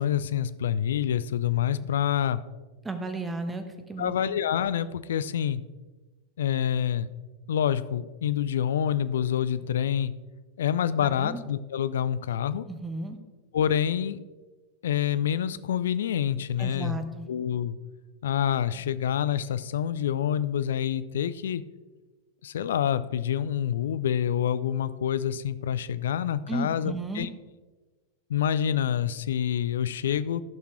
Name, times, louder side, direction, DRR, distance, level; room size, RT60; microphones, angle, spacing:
voice 1, 0.0-2.4 4.0-5.6 6.4-7.1 7.5-10.1 10.6-12.7 13.5-14.2 14.8-17.8 18.2-21.6 22.4-27.3 28.3-30.4, left 9 dB, 60° left, 14 dB, 0.4 m, -27 dB
voice 2, 2.8-4.1 11.0-11.4 12.7-13.2 16.6-17.3 26.5-27.3, right 2 dB, 10° right, 8 dB, 1.0 m, -34 dB
14.5 x 5.8 x 3.2 m, 1.3 s
figure-of-eight pair, 90°, 0 cm